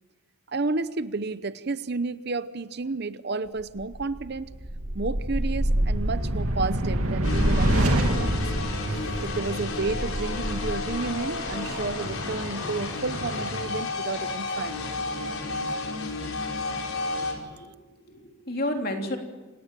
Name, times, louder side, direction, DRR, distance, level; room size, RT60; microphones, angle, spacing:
voice 1, 0.5-4.5 4.9-8.4 9.2-14.9, right 3 dB, 50° right, 14 dB, 0.8 m, -31 dB
sound 1, 3.8-12.2, right 1 dB, 85° right, 2.5 m, -27 dB
sound 2, 7.2-17.3, left 3 dB, 75° left, 4.9 m, -32 dB
voice 2, 17.4-19.2, left 1 dB, 45° left, 3 dB, 3.3 m, -32 dB
28.0 x 17.5 x 7.6 m, 1.3 s
head